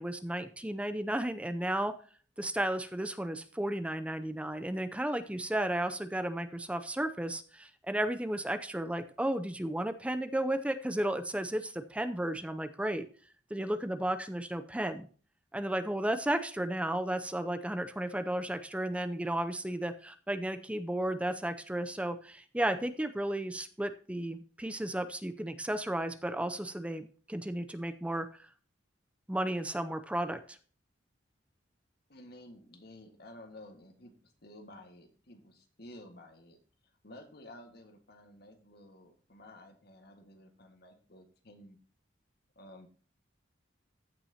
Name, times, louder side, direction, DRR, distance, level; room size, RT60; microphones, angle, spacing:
voice 1, 0.0-1.9 2.4-13.1 13.5-15.1 15.5-28.3 29.3-30.6, right 1 dB, 5° right, 9 dB, 0.5 m, -33 dB
voice 2, 32.1-36.6 37.0-41.8 42.5-42.9, left 1 dB, 55° left, 5 dB, 1.7 m, -53 dB
15.0 x 5.9 x 2.8 m, 0.41 s
head